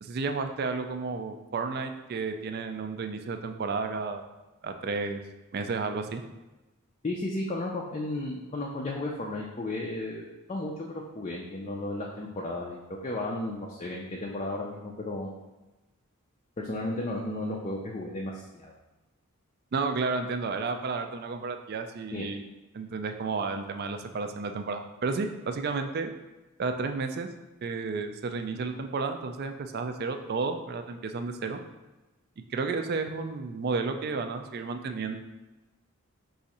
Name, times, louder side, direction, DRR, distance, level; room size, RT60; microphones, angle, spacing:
voice 1, 0.0-4.2 4.6-5.2 5.5-6.2 19.7-22.4 22.7-26.1 26.6-27.3 27.6-31.6 32.5-35.2, right 4 dB, 45° right, 7 dB, 0.3 m, -32 dB
voice 2, 7.0-12.8 13.0-15.3 16.6-18.7 22.1-22.3, left 2 dB, 30° left, -2 dB, 0.4 m, -34 dB
4.8 x 2.6 x 4.1 m, 1.1 s
head